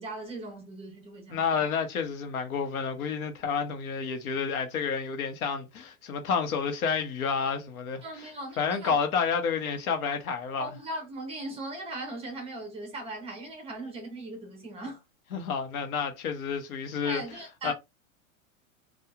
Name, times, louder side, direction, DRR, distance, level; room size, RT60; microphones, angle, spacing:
voice 1, 0.0-1.7 8.0-9.0 10.6-15.0 17.0-17.7, right 2 dB, 15° right, 0.6 m, -39 dB
voice 2, 1.3-8.0 8.6-10.7 15.3-17.2 17.6-17.7, left 6 dB, 85° left, 0.9 m, -30 dB
2.8 x 2.3 x 2.3 m
supercardioid pair, 150°, 42 cm